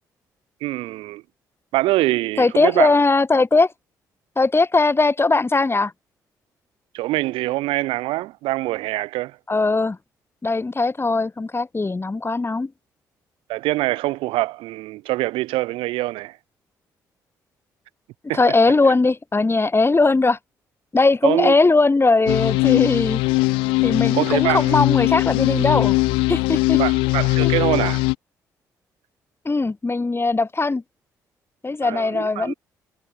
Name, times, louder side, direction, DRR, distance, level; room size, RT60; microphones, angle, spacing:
voice 1, 0.6-1.2 1.7-3.0 6.9-9.4 13.5-16.4 18.3-18.4 21.2-21.5 24.1-24.8 26.8-28.0 31.8-32.5, right 18 dB, 70° right, 5.8 m, -24 dB
voice 2, 2.4-3.7 4.4-5.9 9.5-10.0 10.4-12.7 18.3-20.4 20.9-23.2 23.8-26.0 26.3-26.8 27.4-27.5 29.4-30.8 31.6-32.5, left 3 dB, 25° left, 4.9 m, -19 dB
sound 1, 22.3-28.1, left 24 dB, 65° left, 0.4 m, -20 dB
figure-of-eight pair, 40°, 10 cm